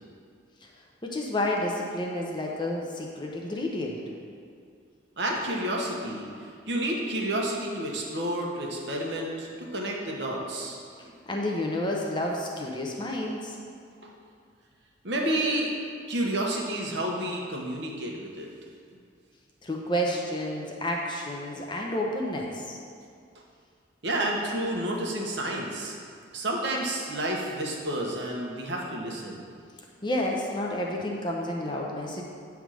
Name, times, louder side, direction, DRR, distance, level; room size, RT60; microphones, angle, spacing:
voice 1, 1.0-4.0 11.3-13.6 19.6-22.7 30.0-32.2, left 1 dB, 25° left, -1 dB, 0.8 m, -30 dB
voice 2, 5.2-6.3 6.7-11.1 15.0-15.7 16.1-18.5 24.0-25.9 26.3-29.4, right 1 dB, 65° right, -1 dB, 1.1 m, -30 dB
8.7 x 3.5 x 6.3 m, 2.2 s
head